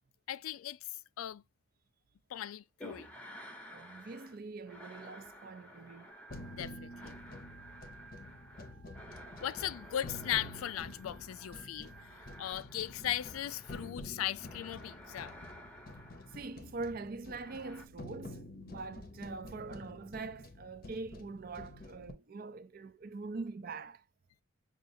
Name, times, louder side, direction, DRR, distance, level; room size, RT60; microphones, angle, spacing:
voice 1, 0.3-0.8 1.2-1.4 2.3-3.1 6.5-7.2 9.4-11.9 12.4-15.3, left 11 dB, 90° left, 0.3 m, -38 dB
sound 1, 2.8-4.4 4.6-14.0 14.3-16.6 17.3-17.8, equal, 5° left, 0.7 m, -53 dB
voice 2, 3.7-6.1 16.3-24.0, right 3 dB, 45° right, 0.4 m, -43 dB
Organ, 6.1-12.5, right 5 dB, 65° right, 1.0 m, -58 dB
sound 2, 6.3-22.1, left 1 dB, 45° left, 0.6 m, -49 dB
6.3 x 2.4 x 2.6 m
head